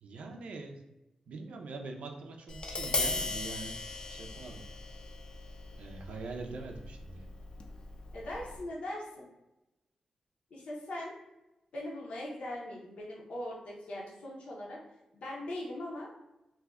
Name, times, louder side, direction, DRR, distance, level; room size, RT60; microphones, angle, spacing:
voice 1, 0.0-0.8 1.3-3.8 4.1-4.6 5.8-7.3, right 3 dB, 85° right, 3 dB, 0.4 m, -43 dB
Tap, 2.5-8.6, left 3 dB, 50° left, 0.4 m, -38 dB
voice 2, 8.1-9.3 10.5-11.1 11.7-14.8 15.1-16.1, left 1 dB, 80° left, -4 dB, 0.8 m, -40 dB
2.6 x 2.1 x 3.5 m, 0.96 s
cardioid pair, 70°, 2 cm